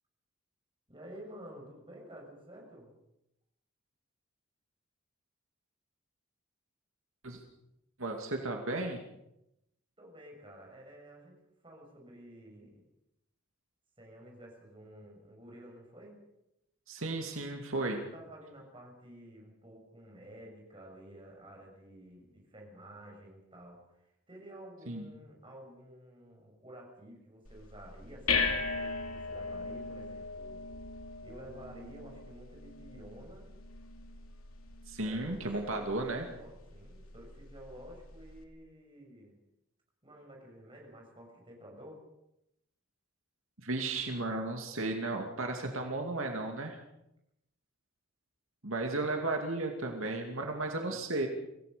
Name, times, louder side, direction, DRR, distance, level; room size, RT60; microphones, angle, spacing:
voice 1, 0.9-2.9 10.0-11.4 11.6-12.8 14.0-16.2 17.8-30.6 31.2-33.5 35.0-39.4 40.0-42.0 48.8-49.2 50.5-51.0, right 1 dB, 25° right, 0 dB, 7.1 m, -51 dB
voice 2, 8.0-9.0 16.9-18.0 24.9-25.1 34.9-36.3 43.6-46.8 48.6-51.3, right 2 dB, 75° right, 3 dB, 2.6 m, -34 dB
sound 1, 27.4-38.4, left 4 dB, 85° left, 2.8 m, -39 dB
26.0 x 16.5 x 6.9 m, 0.84 s
head